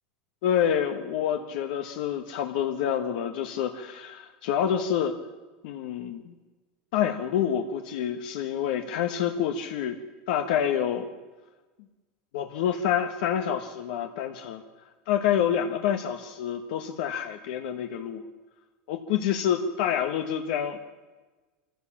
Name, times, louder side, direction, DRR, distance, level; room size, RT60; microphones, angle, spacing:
voice 1, 0.4-5.2 5.6-6.3 6.9-10.0 10.3-11.1 12.3-14.6 15.1-18.2 18.9-20.8, left 9 dB, 65° left, 5 dB, 1.4 m, -27 dB
24.0 x 15.0 x 7.3 m, 1.2 s
supercardioid pair, 160°, 5 cm